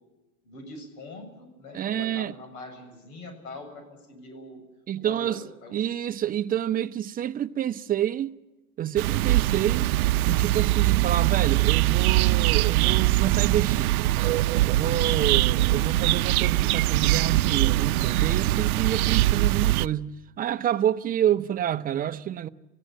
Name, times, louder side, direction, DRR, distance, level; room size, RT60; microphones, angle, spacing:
voice 1, 0.4-4.6 5.0-5.8, left 2 dB, 70° left, 7.5 m, -43 dB
voice 2, 1.7-2.3 4.9-5.4 5.7-8.4 8.8-9.9 10.3-13.9 14.6-22.5, right 10 dB, 20° right, 0.7 m, -28 dB
sound 1, 9.0-19.9, right 17 dB, 70° right, 0.7 m, -22 dB
27.5 x 16.5 x 7.6 m
hypercardioid pair, 120°, 44 cm